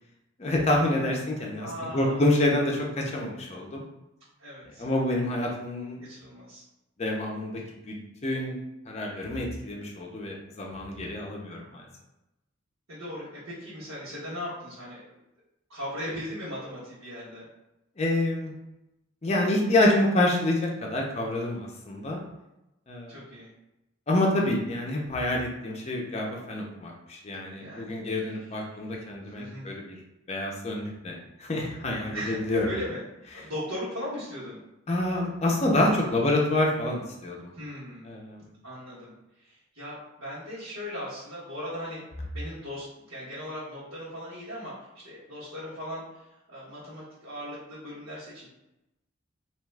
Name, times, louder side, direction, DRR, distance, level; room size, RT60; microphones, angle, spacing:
voice 1, 0.4-1.7 1.9-3.8 4.8-6.0 7.0-7.6 7.9-8.0 8.2-8.6 8.9-11.8 18.0-18.5 19.2-22.2 22.9-23.2 24.1-29.9 30.3-32.7 34.9-37.5 38.0-38.4, left 1 dB, 30° left, -1 dB, 0.5 m, -27 dB
voice 2, 1.6-2.3 4.4-4.8 6.0-6.6 12.9-15.0 15.7-17.5 23.1-23.5 27.5-28.0 28.3-28.4 29.3-29.7 32.1-32.4 32.7-33.0 33.3-34.6 37.5-38.1 38.6-42.0 42.3-46.2 46.5-48.5, equal, 85° right, -12 dB, 1.2 m, -38 dB
2.8 x 2.2 x 3.2 m, 0.92 s
head